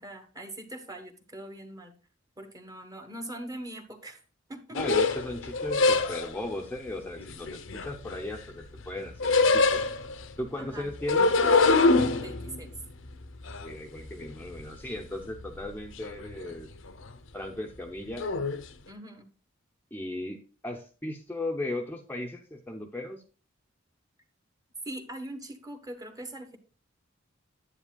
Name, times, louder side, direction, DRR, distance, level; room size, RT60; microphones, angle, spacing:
voice 1, 0.0-1.9 2.4-4.2 4.5-4.8 10.6-10.9 12.2-12.7 18.9-19.3 24.8-26.6, right 1 dB, 20° right, 6 dB, 1.1 m, -42 dB
sound 1, 4.7-6.4 7.2-8.5 8.8-10.3 10.9-14.7 15.0-15.7 16.0-16.5 16.9-17.1 18.2-18.6, left 3 dB, 85° left, 0.8 m, -25 dB
voice 2, 4.7-9.8 10.4-11.3 13.5-16.7 17.3-18.3 19.9-23.2, left 1 dB, 10° left, 1 dB, 0.7 m, -36 dB
9.9 x 8.2 x 2.3 m, 0.35 s
head